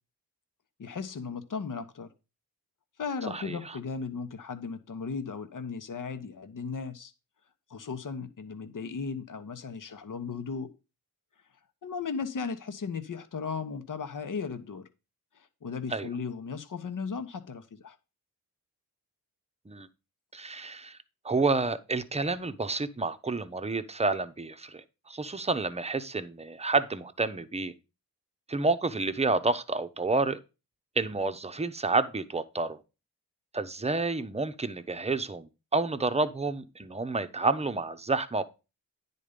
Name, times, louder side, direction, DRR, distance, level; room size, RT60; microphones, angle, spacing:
voice 1, 0.8-2.1 3.0-7.1 7.7-10.7 11.8-14.8 15.3-18.0, left 5 dB, 55° left, 1.1 m, -36 dB
voice 2, 3.3-3.6 15.9-16.1 19.7-19.9 20.3-21.0 21.2-27.7 28.5-30.4 31.0-32.8 33.5-38.4, right 3 dB, 15° right, 0.8 m, -29 dB
9.9 x 4.2 x 5.1 m
cardioid pair, 70°, 37 cm